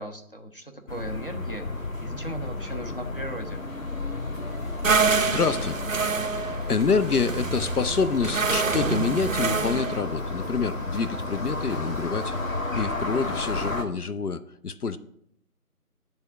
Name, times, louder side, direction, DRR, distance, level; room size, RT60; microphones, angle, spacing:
voice 1, 0.0-3.6, right 1 dB, 35° left, 3 dB, 0.8 m, -37 dB
sound 1, 0.9-13.8, left 2 dB, 60° left, 1.1 m, -32 dB
sound 2, 4.3-12.5, equal, 20° left, 1.6 m, -45 dB
voice 2, 4.8-5.8 6.7-12.4 12.7-15.0, left 5 dB, 75° left, 11 dB, 0.7 m, -27 dB
sound 3, 4.8-10.0, right 5 dB, 60° right, 0.5 m, -26 dB
10.5 x 3.5 x 6.7 m, 0.70 s
figure-of-eight pair, 165°, 45 cm